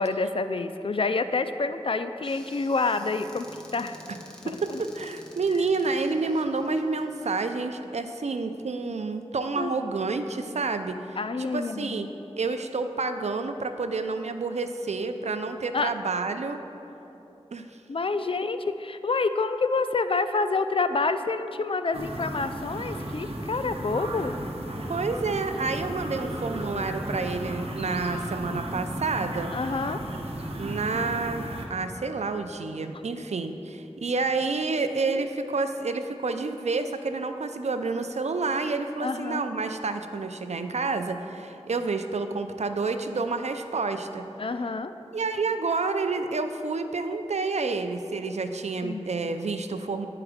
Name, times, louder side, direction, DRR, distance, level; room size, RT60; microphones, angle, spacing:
voice 1, 0.0-3.5 3.7-4.0 4.4-4.8 5.5-5.6 6.2-6.4 9.6-9.7 11.2-12.1 15.7-15.9 17.9-24.3 26.2-26.9 29.5-30.0 35.1-35.3 39.0-39.5 44.4-44.9 48.8-49.1, left 3 dB, 55° left, 10 dB, 0.4 m, -28 dB
Squeak / Cupboard open or close, 2.2-7.5, equal, 5° left, 1.1 m, -50 dB
voice 2, 4.4-11.0 11.4-12.1 12.4-16.6 17.5-17.7 24.9-29.5 30.6-44.2 45.1-50.1, right 3 dB, 80° right, 8 dB, 0.4 m, -29 dB
sound 1, 21.9-31.7, right 1 dB, 60° right, 0.9 m, -34 dB
9.7 x 4.8 x 4.9 m, 3.0 s
wide cardioid pair, 45°, 11 cm